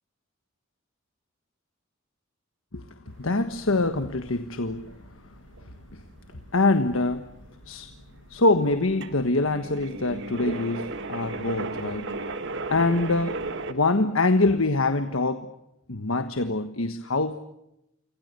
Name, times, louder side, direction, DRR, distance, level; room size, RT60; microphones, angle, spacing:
sound 1, 3.1-13.7, right 3 dB, 60° right, 1.8 m, -37 dB
voice 1, 3.2-4.9 5.9-6.0 6.5-7.3 7.6-7.9 8.3-12.1 12.7-13.4 13.7-15.5 15.9-17.4, left 2 dB, 85° left, 9 dB, 1.4 m, -24 dB
28.5 x 25.0 x 6.9 m, 0.86 s
head